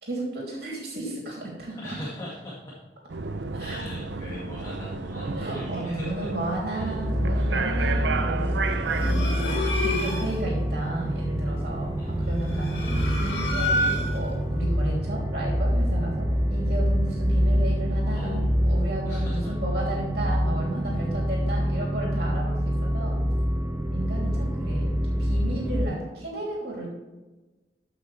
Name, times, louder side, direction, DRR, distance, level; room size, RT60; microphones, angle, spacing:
voice 1, 0.0-2.0 3.5-3.8 5.4-13.8 14.1-23.2 23.9-26.9, right 1 dB, 60° right, -3 dB, 3.0 m, -33 dB
voice 2, 1.8-2.8 3.6-6.3 6.7-6.9 12.0-12.1 18.1-19.6 20.2-20.4, left 1 dB, 20° left, -6 dB, 1.9 m, -40 dB
sound 1, 3.1-9.1, right 4 dB, 85° right, 0.7 m, -32 dB
sound 2, 6.9-25.9, equal, 15° right, 0.6 m, -26 dB
sound 3, 8.9-10.4 12.3-14.4, left 1 dB, 80° left, 1.8 m, -29 dB
14.0 x 5.9 x 3.3 m, 1.2 s
head